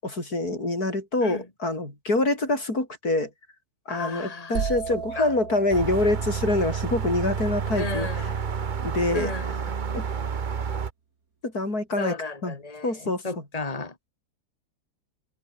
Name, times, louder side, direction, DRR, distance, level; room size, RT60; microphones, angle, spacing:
voice 1, 0.0-3.3 3.9-8.3 8.8-9.3 9.9-10.0 11.4-12.1 12.4-12.6 12.8-13.2, left 2 dB, 75° left, 7.2 m, -26 dB
voice 2, 3.9-4.7 5.2-5.3 7.8-8.4 9.1-9.5 12.0-13.9, left 3 dB, 25° left, 2.8 m, -34 dB
sound 1, 4.5-8.3, right 6 dB, 65° right, 2.3 m, -36 dB
sound 2, 5.7-10.9, right 6 dB, 40° right, 0.9 m, -29 dB
omnidirectional pair, 1.6 m